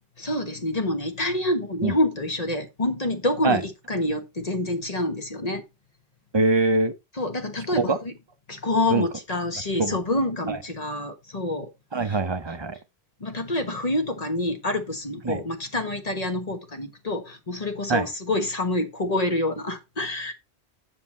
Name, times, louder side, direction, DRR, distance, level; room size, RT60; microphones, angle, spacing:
voice 1, 0.2-5.6 7.2-8.1 8.5-11.7 12.0-12.2 13.2-20.3, left 1 dB, 35° left, 1.4 m, -27 dB
voice 2, 6.3-6.9 7.8-8.0 8.9-9.0 9.8-10.0 10.5-10.6 11.9-12.7 15.2-15.4 17.9-18.1, right 3 dB, 25° right, 0.8 m, -23 dB
7.5 x 7.4 x 4.3 m
omnidirectional pair, 1.1 m